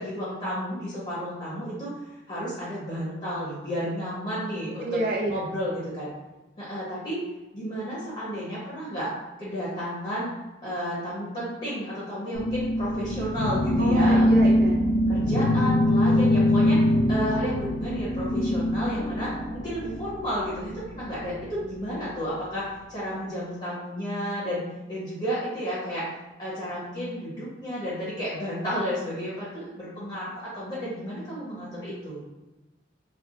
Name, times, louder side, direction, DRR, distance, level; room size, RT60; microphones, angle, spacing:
voice 1, 0.0-1.9 2.3-5.0 5.3-6.1 6.6-7.2 7.5-9.1 9.4-10.3 10.6-14.7 15.1-16.8 17.1-19.3 19.6-24.6 24.9-26.1 26.4-32.2, equal, 35° left, -8 dB, 1.0 m, -32 dB
voice 2, 4.8-5.3 13.8-14.8, right 2 dB, 50° right, 0 dB, 0.5 m, -28 dB
sound 1, 12.3-20.1, left 1 dB, 60° left, 0.6 m, -23 dB
4.5 x 2.2 x 2.4 m, 1.1 s
head